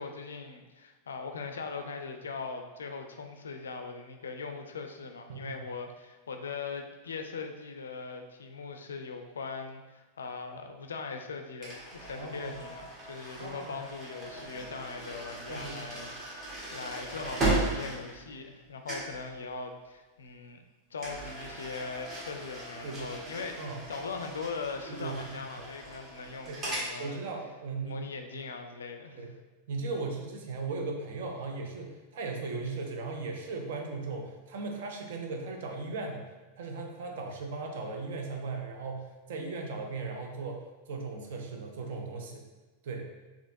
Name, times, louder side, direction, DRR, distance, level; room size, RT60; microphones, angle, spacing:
voice 1, 0.0-20.6 20.9-27.2 27.9-29.3, left 4 dB, 70° left, 5 dB, 0.3 m, -40 dB
voice 2, 5.3-5.6 12.1-12.5 13.4-13.8 15.5-15.8 22.8-23.1 23.6-23.8 24.8-25.4 26.5-26.6 27.0-28.1 29.1-29.4 29.7-36.3 36.6-42.5 42.8-43.1, right 3 dB, 55° right, 2 dB, 0.5 m, -37 dB
sound 1, 11.6-18.6 18.8-19.2 21.0-26.9, right 2 dB, 30° right, 1.4 m, -37 dB
4.1 x 2.8 x 2.7 m, 1.2 s
figure-of-eight pair, 90°, 0 cm